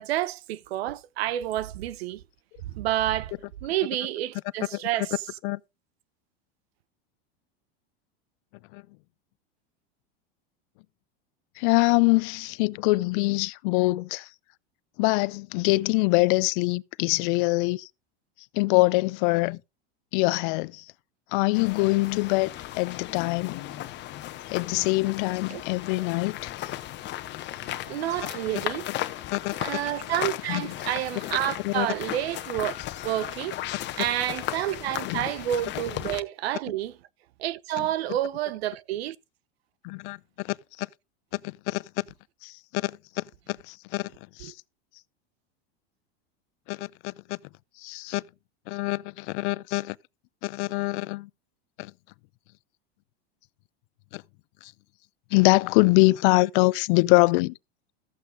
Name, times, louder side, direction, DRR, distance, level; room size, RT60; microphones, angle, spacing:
voice 1, 0.0-2.2 2.6-3.3 3.6-5.1 25.5-25.6 27.9-28.9 29.6-32.8 33.0-36.9 37.4-39.2 44.4-44.5, right 13 dB, 85° right, 0.9 m, -29 dB
voice 2, 11.6-14.3 15.0-17.9 18.5-19.6 20.1-20.8 21.3-23.6 24.5-26.7 29.3-29.5 30.5-30.7 31.6-31.9 35.1-35.2 37.8-37.9 39.8-40.5 41.3-42.0 42.4-44.1 44.4-44.5 46.7-47.4 47.8-48.2 48.7-50.0 50.4-51.3 51.8-51.9 54.1-54.2 54.6-54.7 55.3-57.5, left 24 dB, 55° left, 0.5 m, -24 dB
sound 1, 21.5-36.2, left 14 dB, 35° left, 1.2 m, -36 dB
13.5 x 8.2 x 3.8 m
supercardioid pair, 140°, 30 cm